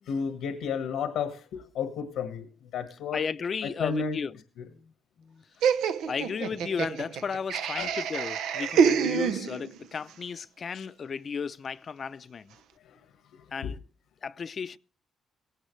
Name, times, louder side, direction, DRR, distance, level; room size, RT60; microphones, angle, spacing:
voice 1, 0.0-3.2 3.6-4.2 7.8-7.9 10.7-10.9 12.8-13.0 13.3-13.7, left 6 dB, 90° left, 1.6 m, -33 dB
voice 2, 3.1-4.3 4.7-4.9 5.2-12.5 13.5-13.8 14.2-14.8, left 6 dB, 45° left, 0.6 m, -35 dB
Laughter, 5.6-9.9, right 7 dB, 85° right, 0.8 m, -27 dB
17.0 x 16.5 x 3.3 m
cardioid pair, 90°, 0 cm